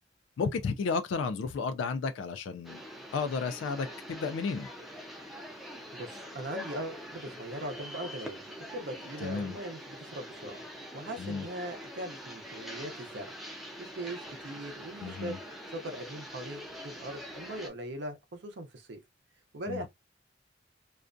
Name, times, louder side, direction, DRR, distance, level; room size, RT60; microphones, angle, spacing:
voice 1, 0.4-2.8 3.1-4.7 9.2-9.5 11.2-11.4 15.0-15.4 19.7-19.9, left 5 dB, 85° left, 0.3 m, -32 dB
sound 1, 2.6-17.7, equal, ahead, 0.4 m, -44 dB
voice 2, 5.9-10.6 10.9-13.3 13.8-15.4 15.7-19.0 19.5-19.9, right 1 dB, 65° right, 0.6 m, -40 dB
2.4 x 2.2 x 2.4 m
head